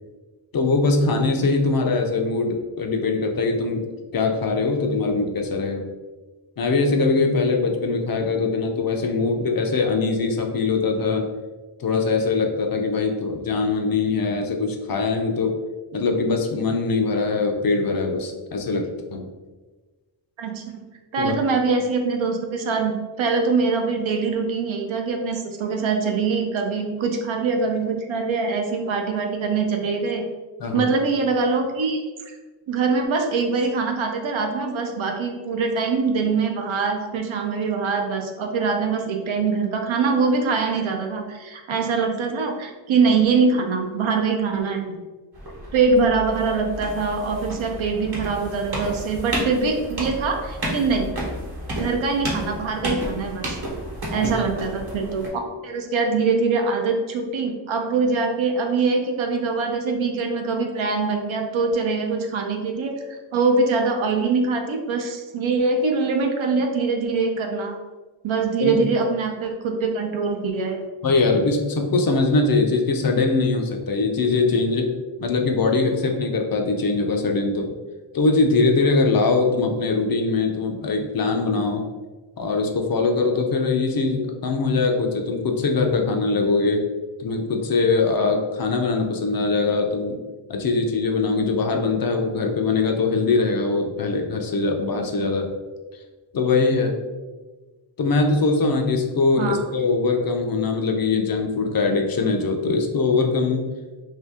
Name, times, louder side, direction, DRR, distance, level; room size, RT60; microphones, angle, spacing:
voice 1, 0.5-3.8 4.1-5.9 6.6-11.2 11.8-15.5 15.9-19.3 21.2-21.3 30.6-30.9 54.1-54.3 68.6-68.8 71.0-74.9 75.2-77.7 78.1-81.8 82.4-86.8 87.2-90.2 90.5-95.5 96.3-97.0 98.0-103.6, left 3 dB, 50° left, 3 dB, 0.5 m, -22 dB
voice 2, 20.4-20.8 21.1-30.3 30.7-32.3 32.7-44.9 45.7-51.1 51.8-53.6 54.1-55.3 55.6-67.7 68.2-70.8 99.4-99.6, right 4 dB, 75° right, 3 dB, 0.6 m, -23 dB
sound 1, 45.3-55.3, right 1 dB, 50° right, 1.0 m, -32 dB
2.7 x 2.7 x 3.4 m, 1.3 s
wide cardioid pair, 125°, 48 cm